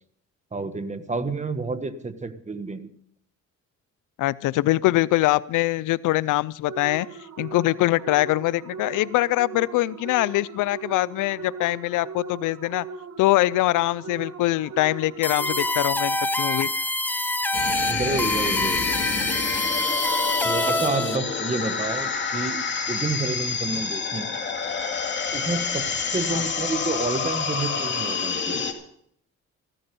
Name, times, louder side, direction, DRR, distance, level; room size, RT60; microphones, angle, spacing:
voice 1, 0.5-2.9 17.9-18.9 20.4-24.3 25.3-28.7, right 3 dB, 25° right, 10 dB, 1.5 m, -29 dB
voice 2, 4.2-7.1 7.4-12.9 13.2-16.7 26.3-26.4, left 17 dB, 85° left, 20 dB, 0.5 m, -23 dB
sound 1, 6.7-16.1, right 5 dB, 60° right, 1.5 m, -39 dB
sound 2, 15.2-21.2, left 1 dB, 5° left, 0.6 m, -26 dB
sound 3, 17.5-28.7, left 5 dB, 40° left, 2.4 m, -28 dB
14.5 x 14.0 x 5.3 m, 0.68 s
cardioid pair, 90°, 30 cm